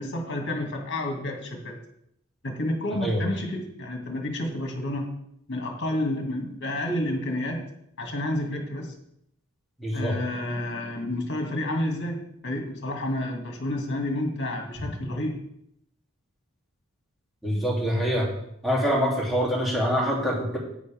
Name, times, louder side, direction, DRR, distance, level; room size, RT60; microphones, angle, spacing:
voice 1, 0.0-1.8 2.4-5.1 5.5-7.7 8.0-8.9 9.9-15.4, left 1 dB, 60° left, 2 dB, 2.1 m, -30 dB
voice 2, 9.8-10.1 17.4-18.3 18.6-20.6, equal, ahead, -5 dB, 2.8 m, -25 dB
11.5 x 9.5 x 3.5 m, 0.74 s
head